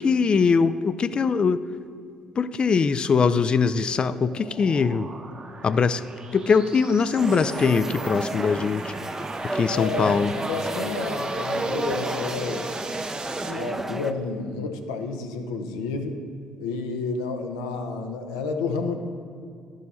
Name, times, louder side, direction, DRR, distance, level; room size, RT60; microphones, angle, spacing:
voice 1, 0.0-1.6 2.4-5.1 5.6-6.0 6.3-8.9 9.4-10.3, left 5 dB, 40° left, 15 dB, 0.4 m, -22 dB
sound 1, 3.4-13.5, right 4 dB, 40° right, 1.1 m, -41 dB
sound 2, 7.2-14.1, right 2 dB, 15° right, 0.5 m, -31 dB
voice 2, 9.7-12.7 13.4-16.2 16.6-19.0, left 4 dB, 85° left, 5 dB, 0.6 m, -30 dB
10.5 x 6.4 x 4.1 m, 2.3 s
hypercardioid pair, 50°, 2 cm